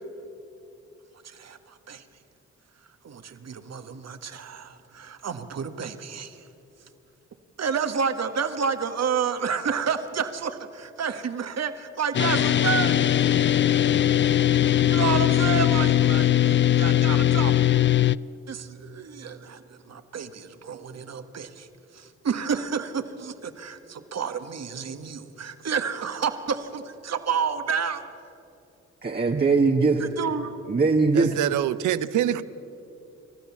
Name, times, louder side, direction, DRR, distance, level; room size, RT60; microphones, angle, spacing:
voice 1, 1.2-2.0 3.0-6.4 7.6-13.1 14.9-17.5 18.5-21.7 21.9-28.0 30.0-30.5, right 6 dB, 60° right, 9 dB, 1.5 m, -30 dB
sound 1, 12.1-18.2, left 11 dB, 40° left, 0.4 m, -20 dB
voice 2, 29.0-30.1 30.7-31.4, right 4 dB, 30° right, 1 dB, 1.4 m, -21 dB
voice 3, 31.1-32.4, right 11 dB, 90° right, 15 dB, 0.7 m, -25 dB
29.5 x 13.5 x 7.2 m, 2.8 s
supercardioid pair, 60°, 30 cm